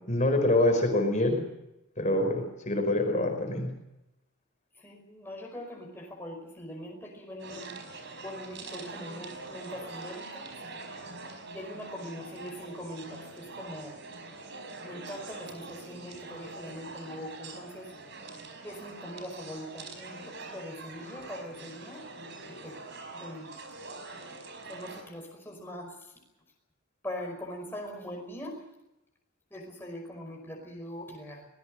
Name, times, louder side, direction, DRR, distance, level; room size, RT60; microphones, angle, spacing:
voice 1, 0.1-1.4 2.0-3.7, left 1 dB, 35° left, 3 dB, 5.0 m, -25 dB
voice 2, 4.8-7.7 8.2-10.5 11.5-13.9 14.8-17.9 18.6-22.0 22.5-22.8 23.2-23.5 24.7-26.1 27.0-28.6 29.5-31.5, equal, 10° left, 0 dB, 5.4 m, -42 dB
sound 1, 7.4-25.0, right 3 dB, 55° right, 4.9 m, -44 dB
24.0 x 20.0 x 6.5 m, 0.89 s
head